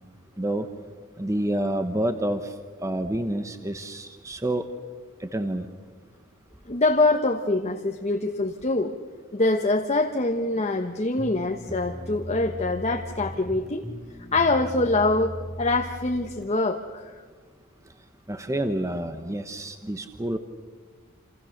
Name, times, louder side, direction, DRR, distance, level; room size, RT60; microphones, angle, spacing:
voice 1, 1.2-2.5 2.8-4.6 5.2-5.7 18.3-20.4, right 1 dB, 15° right, 8 dB, 1.1 m, -28 dB
voice 2, 6.7-8.9 9.3-13.8 14.3-17.1, left 2 dB, 30° left, 4 dB, 1.2 m, -24 dB
sound 1, 11.2-16.5, equal, ahead, 1.8 m, -38 dB
28.5 x 27.5 x 6.6 m, 1.5 s
head